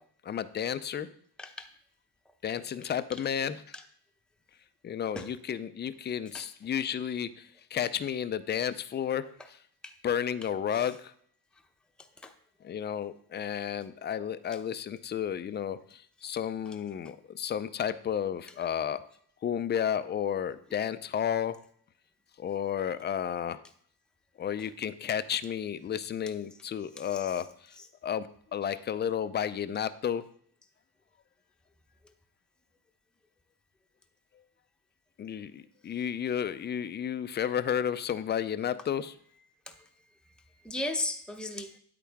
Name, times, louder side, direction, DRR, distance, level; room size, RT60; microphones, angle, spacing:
voice 1, 0.2-1.1 2.4-3.6 4.8-9.3 10.0-11.1 12.6-19.0 19.4-21.5 22.4-23.6 24.4-27.8 28.0-30.2 35.2-39.1, left 9 dB, 25° left, 13 dB, 0.5 m, -32 dB
voice 2, 1.4-1.7 3.1-3.2 3.7-3.8 5.2-5.3 6.3-6.5 9.8-9.9 10.7-10.9 12.0-12.3 17.0-17.1 27.0-27.4 27.8-27.9 39.7-41.8, left 2 dB, ahead, 4 dB, 0.8 m, -38 dB
10.0 x 8.6 x 3.5 m, 0.62 s
cardioid pair, 120°, 42 cm